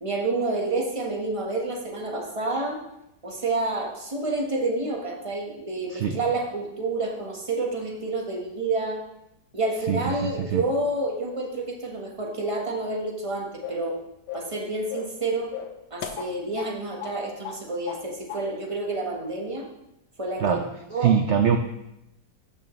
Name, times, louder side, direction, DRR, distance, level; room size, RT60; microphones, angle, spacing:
voice 1, 0.0-2.8 3.2-9.0 9.5-14.0 14.3-15.5 15.9-19.6 20.2-20.6 20.9-21.1, right 2 dB, 20° right, 0 dB, 1.2 m, -29 dB
voice 2, 9.9-10.6 20.4-20.7 21.0-21.6, right 7 dB, 80° right, 6 dB, 0.6 m, -23 dB
sound 1, 13.6-13.9 14.3-14.6 14.9-15.2 15.5-16.7 17.0-17.2 17.4-18.0 18.3-18.5, left 7 dB, 85° left, 1.3 m, -36 dB
12.5 x 5.8 x 3.1 m, 0.86 s
omnidirectional pair, 1.8 m